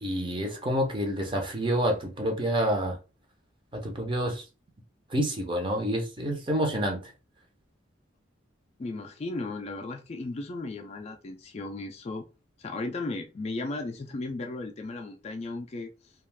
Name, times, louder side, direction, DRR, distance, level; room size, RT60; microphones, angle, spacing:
voice 1, 0.0-3.0 3.7-4.4 5.1-7.1, equal, 25° right, 0.6 m, -28 dB
voice 2, 8.8-12.2 12.6-16.1, left 2 dB, 30° left, 0.3 m, -35 dB
2.4 x 2.3 x 3.2 m
head